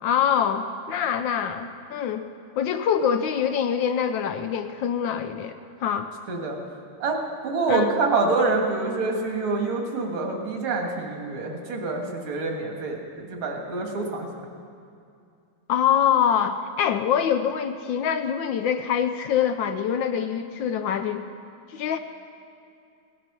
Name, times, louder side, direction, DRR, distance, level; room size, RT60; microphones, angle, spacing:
voice 1, 0.0-2.2 2.6-6.1 7.7-7.9 15.7-21.2 21.7-22.0, left 8 dB, 75° left, 8 dB, 1.2 m, -24 dB
voice 2, 7.0-14.3, right 3 dB, 80° right, 2 dB, 2.4 m, -26 dB
17.0 x 10.0 x 6.0 m, 2.5 s
omnidirectional pair, 2.3 m